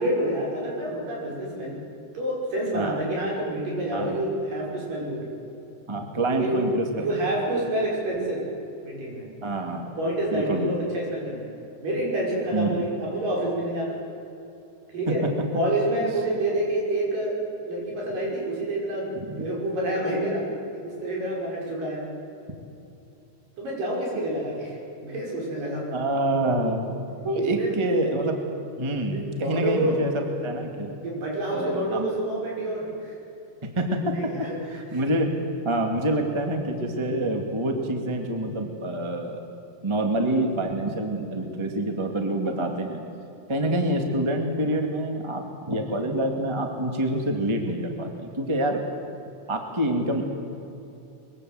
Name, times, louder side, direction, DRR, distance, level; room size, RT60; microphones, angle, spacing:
voice 1, 0.0-1.8 2.1-5.2 6.3-6.6 7.0-8.5 8.8-9.3 10.0-11.5 11.8-14.0 14.9-15.3 15.5-17.4 17.6-19.1 19.4-20.5 20.8-22.1 23.6-24.8 25.0-25.9 27.4-27.8 29.1-29.9 31.0-33.2 34.0-34.6 34.9-35.0, right 1 dB, 70° right, -3 dB, 7.8 m, -28 dB
voice 2, 5.9-7.0 9.4-9.9 10.3-10.9 12.5-12.8 15.1-15.3 19.1-19.4 25.9-26.8 27.2-28.3 28.8-31.0 31.5-32.1 33.6-34.3 34.7-35.4 35.6-39.4 39.8-43.0 43.5-48.8 49.5-50.2, right 1 dB, 10° right, 3 dB, 1.7 m, -26 dB
23.0 x 23.0 x 7.9 m, 2.8 s
omnidirectional pair, 4.0 m